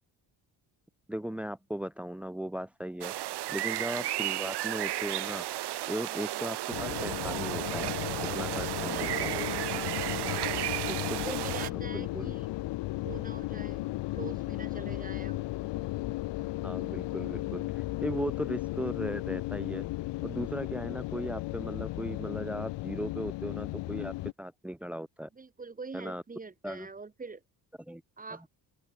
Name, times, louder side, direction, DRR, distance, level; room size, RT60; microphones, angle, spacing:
voice 1, 1.1-3.1 3.5-5.5 5.9-8.0 8.3-9.3 10.1-10.5 10.9-11.4 11.7-12.3 16.6-19.9 20.2-25.3 25.9-26.2 26.6-26.9 27.8-28.0 28.3-28.4, right 1 dB, 5° right, 0.5 m, -37 dB
sound 1, 3.0-11.7, right 15 dB, 70° right, 1.2 m, -33 dB
sound 2, 6.7-24.3, left 18 dB, 85° left, 0.7 m, -35 dB
voice 2, 8.8-9.7 10.2-10.7 11.2-12.5 13.0-13.9 14.1-15.5 25.4-27.4 28.2-28.5, right 4 dB, 20° right, 7.1 m, -44 dB
open air
cardioid pair, 170°, 41 cm